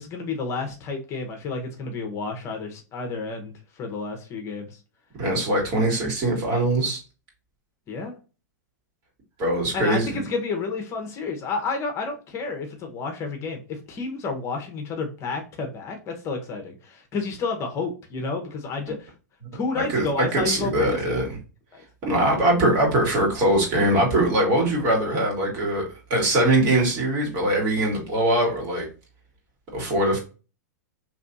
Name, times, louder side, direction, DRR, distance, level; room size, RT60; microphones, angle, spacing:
voice 1, 0.0-4.8 7.9-8.1 9.7-19.1 19.5-21.1 21.7-21.8, left 4 dB, 30° left, 4 dB, 0.9 m, -30 dB
voice 2, 5.2-7.0 9.4-10.2 19.8-21.3 22.0-28.9 29.7-30.2, right 1 dB, 40° right, 0 dB, 2.0 m, -22 dB
3.3 x 3.0 x 2.6 m, 0.33 s
hypercardioid pair, 120°, 9 cm